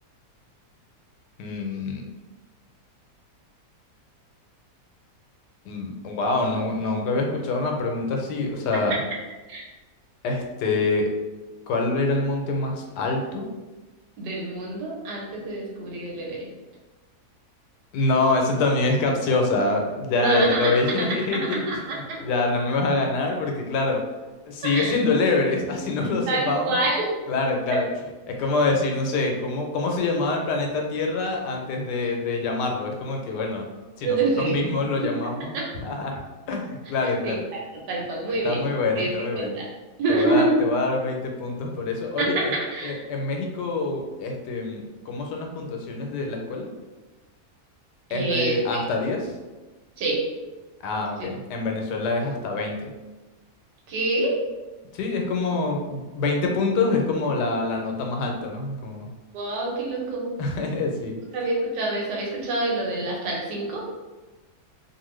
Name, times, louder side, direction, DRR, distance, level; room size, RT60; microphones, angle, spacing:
voice 1, 1.4-2.0 5.7-9.0 10.2-11.1 11.7-13.5 17.9-21.6 21.9-24.0 24.5-26.8 27.3-27.9 28.3-33.6 34.0-35.5 35.8-36.2 36.5-37.4 38.4-39.6 40.1-42.5 42.8-46.7 48.1-49.3 50.8-52.9 54.9-59.1 60.4-61.2, left 3 dB, 85° left, 2 dB, 1.2 m, -25 dB
voice 2, 14.2-16.5 20.2-20.7 21.0-22.2 24.6-25.0 25.7-25.8 26.3-27.1 34.0-34.5 35.0-35.1 35.5-35.6 37.0-37.3 37.9-38.6 39.0-39.1 39.4-39.7 40.0-40.5 42.2-43.0 48.1-48.8 50.0-50.2 51.2-51.3 53.9-54.3 59.3-60.3 61.3-63.9, right 2 dB, 90° right, -3 dB, 1.4 m, -26 dB
2.8 x 2.5 x 3.1 m, 1.2 s
omnidirectional pair, 1.7 m